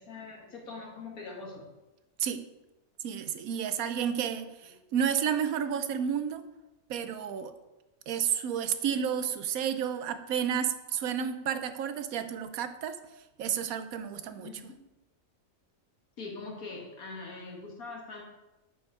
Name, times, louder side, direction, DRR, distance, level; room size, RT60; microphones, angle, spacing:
voice 1, 0.0-1.7 14.4-14.8 16.2-18.2, left 3 dB, 80° left, 0 dB, 2.1 m, -42 dB
voice 2, 3.0-6.4 6.9-7.5 8.1-13.0 13.4-14.5, right 8 dB, 80° right, 10 dB, 1.1 m, -31 dB
8.6 x 5.2 x 4.7 m, 1.0 s
omnidirectional pair, 1.5 m